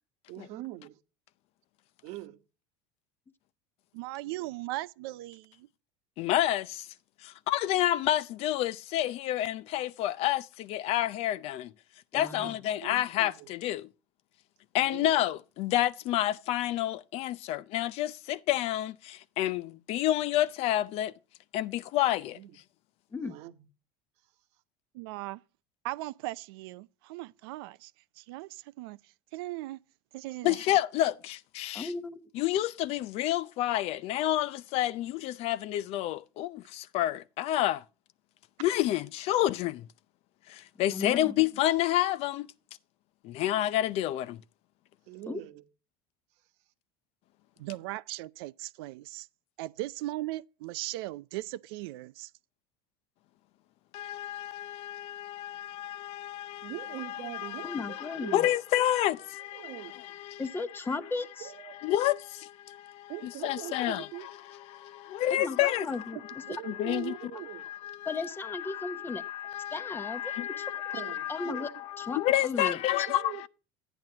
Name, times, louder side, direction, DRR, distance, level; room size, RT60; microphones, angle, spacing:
voice 1, 0.3-1.0 2.0-2.4 12.3-12.5 12.8-13.5 14.8-15.1 22.3-22.5 23.2-23.5 45.1-45.6 56.6-58.6 59.5-60.0 61.4-61.8 63.1-64.3 66.1-67.7 70.9-71.7 73.1-73.5, right 16 dB, 65° right, 1.1 m, -42 dB
voice 2, 3.9-5.7 24.9-25.4 25.8-27.9 28.2-29.0 29.3-29.8 30.1-30.6 47.6-49.3 49.6-52.3, right 18 dB, 85° right, 0.5 m, -38 dB
voice 3, 6.2-6.9 7.2-11.7 12.1-13.9 14.7-21.1 21.5-22.4 30.4-31.9 32.3-37.8 38.6-39.9 40.5-42.5 43.2-44.4 53.9-60.5 61.8-66.2 66.6-73.5, left 13 dB, 55° left, 0.5 m, -30 dB
voice 4, 12.1-12.5 23.1-23.3 31.7-32.2 40.9-41.3 45.3-45.4 57.6-58.5 60.4-61.5 65.3-66.2 68.1-69.2 69.7-70.6 71.3-71.7 72.0-73.1, left 3 dB, 20° left, 0.9 m, -36 dB
12.0 x 9.0 x 2.8 m
supercardioid pair, 120°, 12 cm